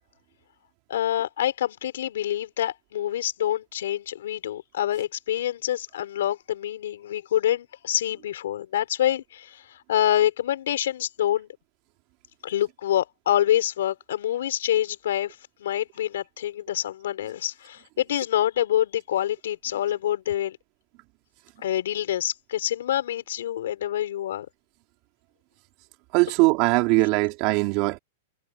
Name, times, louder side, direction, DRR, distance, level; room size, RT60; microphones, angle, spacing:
voice 1, 0.9-11.5 12.4-20.6 21.6-24.5, left 11 dB, 80° left, 4.5 m, -26 dB
voice 2, 26.1-28.0, right 25 dB, 40° right, 3.4 m, -21 dB
supercardioid pair, 150°, 0 cm